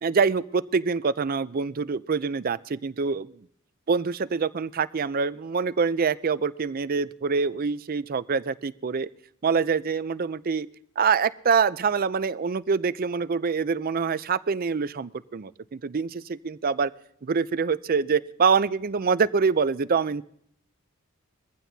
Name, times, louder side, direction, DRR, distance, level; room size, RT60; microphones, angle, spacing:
voice 1, 0.0-3.3 3.9-9.1 9.4-10.7 11.0-16.9 17.2-20.2, right 5 dB, 45° right, 15 dB, 0.5 m, -25 dB
22.0 x 15.0 x 2.8 m, 0.68 s
head